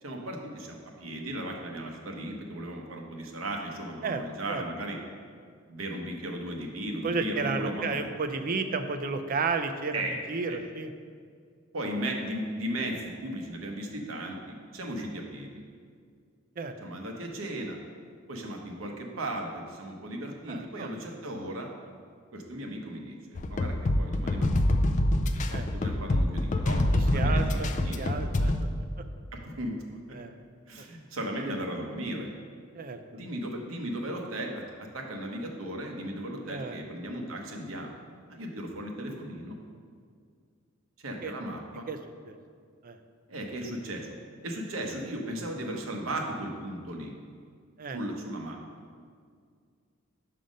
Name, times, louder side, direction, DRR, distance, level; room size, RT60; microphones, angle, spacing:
voice 1, 0.0-5.0 5.7-8.0 9.9-10.2 10.5-10.6 11.7-15.6 16.8-17.8 18.3-21.7 22.3-24.5 25.7-28.0 29.3-29.7 30.1-30.2 30.7-32.3 33.1-38.0 38.3-39.6 41.0-41.8 43.3-44.1 44.4-47.1 47.9-48.6, right 1 dB, 75° right, 2 dB, 0.9 m, -36 dB
voice 2, 7.0-10.9 16.6-16.7 20.5-20.9 25.5-25.7 26.9-27.7 28.0-28.7 30.1-30.3 32.7-33.0 36.4-36.8 41.2-41.3 41.9-42.0 42.3-42.4 42.8-43.0 47.8-48.0, right 4 dB, 45° right, 8 dB, 0.4 m, -32 dB
sound 1, 23.4-28.6, left 1 dB, 35° left, 0.4 m, -25 dB
5.6 x 5.2 x 5.1 m, 2.1 s
head